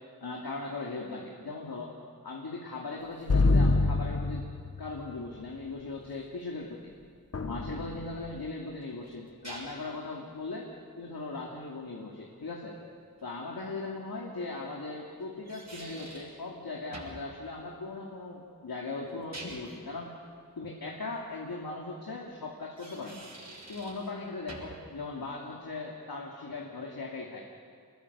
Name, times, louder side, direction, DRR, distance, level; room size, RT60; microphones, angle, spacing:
voice 1, 0.2-1.9 2.2-4.5 4.8-6.9 7.4-10.7 11.0-12.8 13.2-20.1 20.6-23.3 23.7-27.5, left 3 dB, 80° left, -2 dB, 2.7 m, -39 dB
sound 1, 3.3-5.1 7.3-8.3, left 3 dB, 45° left, 1.0 m, -26 dB
sound 2, 8.6-10.0 13.2-13.3 15.2-16.4 16.9-17.3 19.1-19.8 22.6-24.1 24.5-24.9, right 2 dB, 50° right, 7.0 m, -46 dB
26.5 x 21.5 x 6.8 m, 2.3 s
wide cardioid pair, 95°, 36 cm